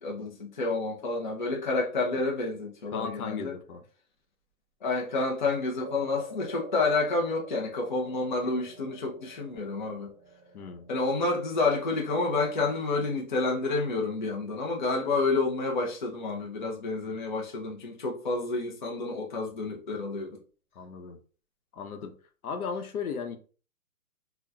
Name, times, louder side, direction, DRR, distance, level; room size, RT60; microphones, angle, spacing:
voice 1, 0.0-3.5 4.8-10.1 10.9-20.4, left 3 dB, 35° left, 0.4 m, -29 dB
voice 2, 2.9-3.8 10.5-10.9 20.7-21.2 21.7-22.1 22.4-23.4, left 6 dB, 80° left, 0.8 m, -36 dB
sound 1, 5.8-14.3, right 1 dB, 15° right, 0.6 m, -49 dB
3.9 x 2.2 x 2.3 m
hypercardioid pair, 175°, 43 cm